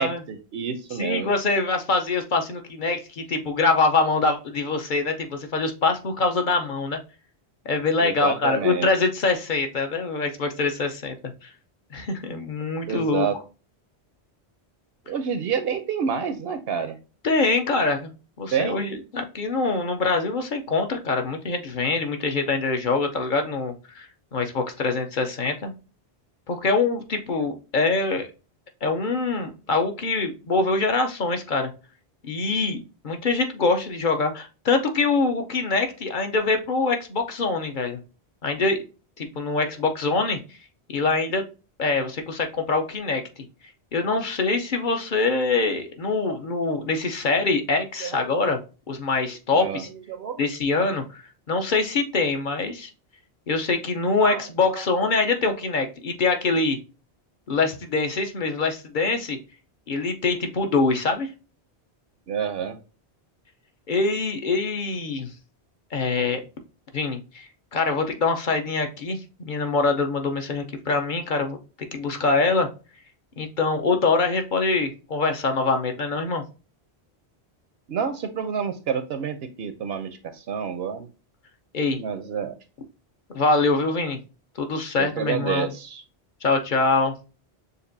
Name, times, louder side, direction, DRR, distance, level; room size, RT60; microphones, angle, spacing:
voice 1, 0.0-1.3 8.0-8.9 12.9-13.4 15.1-17.0 18.5-18.8 46.3-46.4 48.0-48.5 49.5-49.8 50.1-50.4 54.2-54.4 54.7-54.8 62.3-62.8 77.9-81.1 82.0-82.5 85.0-86.0, right 7 dB, 70° right, 8 dB, 0.8 m, -28 dB
voice 2, 0.9-7.0 7.6-11.5 11.9-13.3 17.2-18.1 18.4-25.7 26.5-28.3 28.8-31.7 32.2-38.0 38.4-38.8 39.2-40.4 40.9-41.4 41.8-43.2 43.9-48.6 48.9-49.9 50.4-52.9 53.5-56.8 57.5-59.4 59.9-61.3 63.9-65.3 65.9-66.4 66.9-67.4 67.7-72.7 73.4-76.4 81.7-82.0 83.3-84.2 84.6-85.7 86.4-87.1, left 3 dB, 55° left, 5 dB, 0.8 m, -24 dB
6.6 x 2.6 x 2.6 m, 0.32 s
omnidirectional pair, 1.1 m